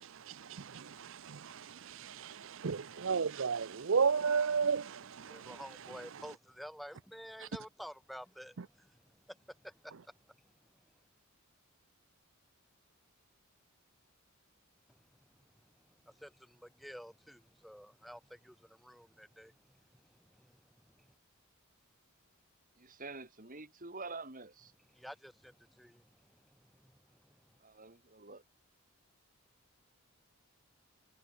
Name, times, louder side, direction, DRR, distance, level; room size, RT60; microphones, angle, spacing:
voice 1, 0.0-5.6 7.4-7.5, right 5 dB, 60° right, 0.6 m, -34 dB
voice 2, 5.2-10.5 14.9-15.0 15.4-21.1 24.9-27.5, equal, ahead, 4.2 m, -52 dB
voice 3, 22.8-24.7 27.6-28.4, right 3 dB, 40° right, 3.6 m, -47 dB
head